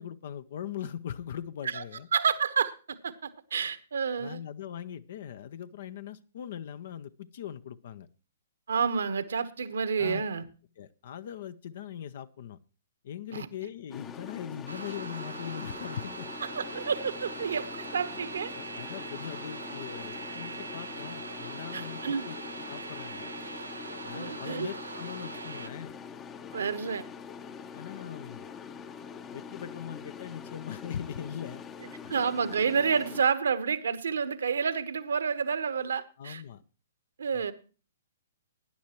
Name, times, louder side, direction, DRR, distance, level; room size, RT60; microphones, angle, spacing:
voice 1, 0.0-2.1 4.2-8.1 10.0-10.2 10.8-12.6 13.0-16.3 18.5-23.3 24.0-25.9 27.7-28.5 29.3-31.6 32.0-32.1 36.2-36.6 37.3-37.5, left 9 dB, 50° left, 14 dB, 0.6 m, -40 dB
voice 2, 2.1-4.4 8.7-10.4 13.3-13.5 16.5-18.5 21.7-22.3 24.1-24.7 26.5-27.0 32.1-36.4 37.2-37.5, right 6 dB, 65° right, 14 dB, 1.1 m, -29 dB
sound 1, 13.9-33.2, left 6 dB, 20° left, 0.8 m, -44 dB
sound 2, 14.7-25.7, right 3 dB, 80° right, 0.5 m, -41 dB
18.0 x 10.5 x 3.0 m, 0.35 s
figure-of-eight pair, 120°, 0 cm